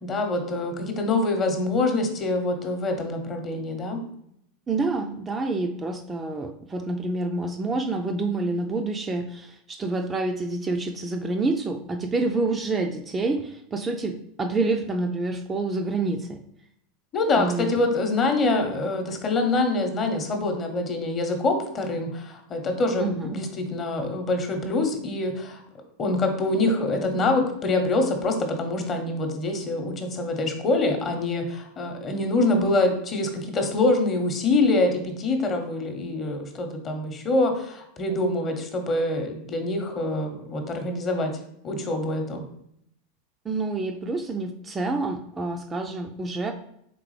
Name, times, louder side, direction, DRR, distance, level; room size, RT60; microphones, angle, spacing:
voice 1, 0.0-4.0 17.1-25.6 26.0-42.4, left 2 dB, 30° left, 4 dB, 0.9 m, -25 dB
voice 2, 4.7-16.4 17.4-17.8 23.0-23.4 43.4-46.5, right 3 dB, 20° right, 4 dB, 0.4 m, -28 dB
4.5 x 3.6 x 3.2 m, 0.73 s
figure-of-eight pair, 85°, 0 cm